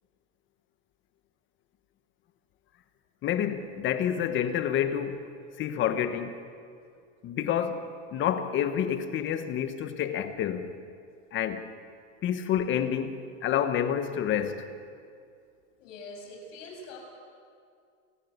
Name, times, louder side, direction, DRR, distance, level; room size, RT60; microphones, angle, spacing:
voice 1, 3.2-5.3 5.6-6.4 7.2-7.8 8.1-10.7 11.3-11.7 12.2-14.7, left 9 dB, 30° left, 1.3 m, -28 dB
voice 2, 15.8-17.0, left 2 dB, 80° left, 6.9 m, -43 dB
28.5 x 11.5 x 8.2 m
supercardioid pair, 145°, 38 cm